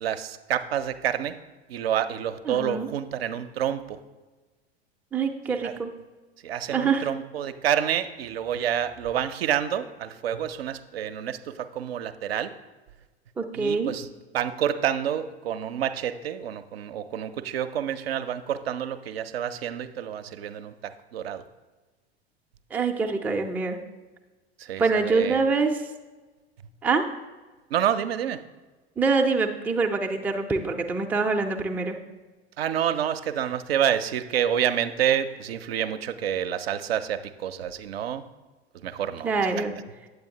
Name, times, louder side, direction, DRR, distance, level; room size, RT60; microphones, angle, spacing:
voice 1, 0.0-1.4 1.7-4.0 5.6-5.7 6.4-12.5 13.5-14.1 14.3-21.4 24.6-25.4 27.7-28.4 32.6-38.2 38.8-39.5, right 9 dB, 65° right, 10 dB, 0.5 m, -28 dB
voice 2, 2.5-2.9 5.1-5.9 6.7-7.1 13.4-13.9 22.7-23.8 24.8-25.8 26.8-27.0 29.0-32.0 39.2-39.7, right 4 dB, 5° right, 3 dB, 0.4 m, -25 dB
8.8 x 7.8 x 2.8 m, 1.2 s
figure-of-eight pair, 80°, 32 cm